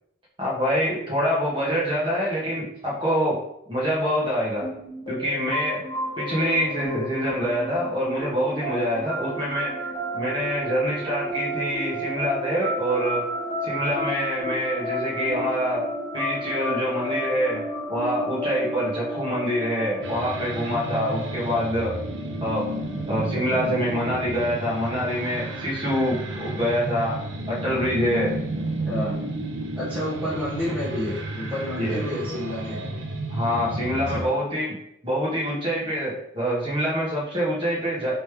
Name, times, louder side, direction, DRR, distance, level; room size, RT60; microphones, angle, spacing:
voice 1, 0.4-3.4 3.7-4.7 5.1-5.8 6.2-13.3 13.6-15.8 16.1-17.6 17.9-21.9 22.4-22.7 23.1-27.2 27.5-28.3 31.8-32.0 33.3-34.8 35.0-38.1, equal, 25° right, -6 dB, 1.5 m, -25 dB
sound 1, 4.6-24.1, equal, 25° left, 1.4 m, -32 dB
sound 2, 20.0-34.2, right 1 dB, 65° right, 0.6 m, -32 dB
voice 2, 28.8-29.2 29.8-33.0 34.1-34.3, left 1 dB, 5° right, -12 dB, 1.0 m, -30 dB
4.2 x 3.3 x 3.3 m, 0.80 s
head